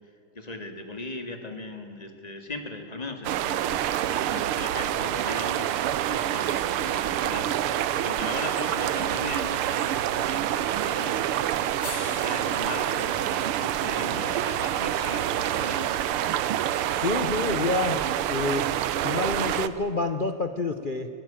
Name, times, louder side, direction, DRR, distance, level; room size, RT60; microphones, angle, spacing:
voice 1, 0.4-3.8 4.3-5.8 6.0-11.3 11.8-15.9, left 2 dB, 20° left, 5 dB, 2.2 m, -38 dB
sound 1, 3.2-19.7, right 11 dB, 80° right, 1.7 m, -27 dB
sound 2, 11.8-16.0 17.3-17.4, left 8 dB, 60° left, 1.9 m, -46 dB
voice 2, 17.0-18.0 18.3-18.7 19.0-21.1, left 3 dB, 80° left, 7 dB, 0.4 m, -27 dB
25.5 x 17.0 x 8.9 m, 2.5 s
omnidirectional pair, 2.4 m